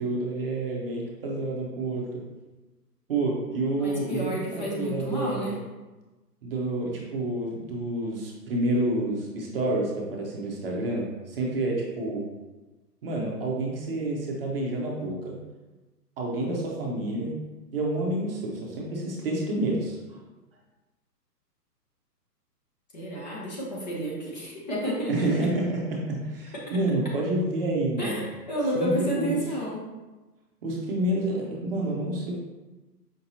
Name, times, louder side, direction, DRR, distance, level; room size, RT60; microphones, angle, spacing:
voice 1, 0.0-2.2 3.1-5.6 6.4-12.3 13.0-15.3 16.2-17.3 17.7-20.2 25.1-28.2 28.7-29.4 30.6-32.4, right 2 dB, 35° right, -2 dB, 0.7 m, -29 dB
voice 2, 3.8-5.5 22.9-25.3 28.0-29.8, equal, 25° left, -4 dB, 0.6 m, -30 dB
5.2 x 2.7 x 2.8 m, 1.1 s
figure-of-eight pair, 130°, 49 cm